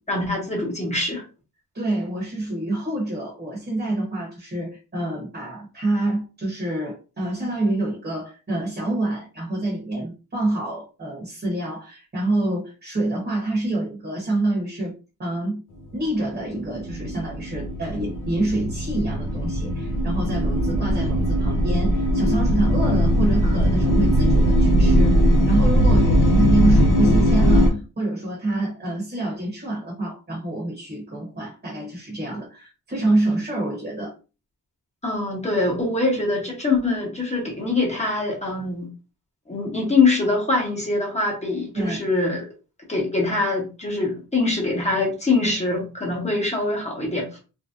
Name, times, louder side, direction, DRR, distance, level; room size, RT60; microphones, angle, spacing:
voice 1, 0.1-1.2 35.0-38.9 39.5-42.5 42.9-47.4, left 3 dB, 20° left, -2 dB, 1.1 m, -23 dB
voice 2, 1.7-14.9 15.2-15.6 15.9-34.1 41.7-42.0, right 2 dB, 25° right, -3 dB, 1.1 m, -26 dB
sound 1, 16.1-27.7, equal, 55° left, 0.9 m, -19 dB
3.1 x 2.7 x 2.5 m, 0.32 s
wide cardioid pair, 155°, 37 cm